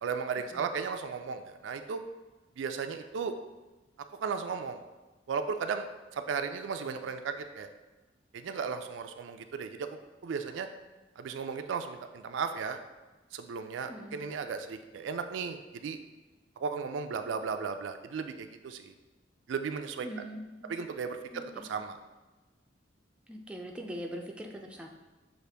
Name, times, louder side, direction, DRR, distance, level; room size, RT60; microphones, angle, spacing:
voice 1, 0.0-2.0 2.6-3.3 4.2-4.8 5.3-5.9 6.1-7.7 8.3-9.9 10.2-10.7 11.2-12.8 13.3-16.0 16.6-18.9 19.5-20.1 20.7-22.0, right 5 dB, 80° right, 7 dB, 0.3 m, -35 dB
voice 2, 20.0-20.7 21.3-21.7 23.3-24.9, equal, 5° right, 1 dB, 0.4 m, -42 dB
6.4 x 2.5 x 3.3 m, 1.1 s
head